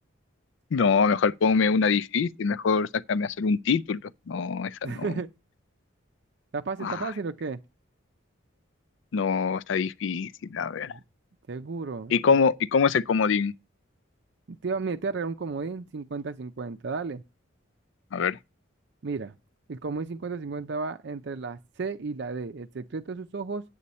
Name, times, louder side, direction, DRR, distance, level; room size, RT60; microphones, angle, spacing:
voice 1, 0.7-4.0 4.3-5.1 6.8-7.1 9.1-10.9 12.1-13.5 18.1-18.4, left 5 dB, 65° left, 0.4 m, -24 dB
voice 2, 4.8-5.3 6.5-7.6 10.9-11.0 11.5-12.4 14.5-17.2 19.0-19.3 19.7-23.6, right 4 dB, 55° right, 0.5 m, -33 dB
8.6 x 8.4 x 4.2 m
head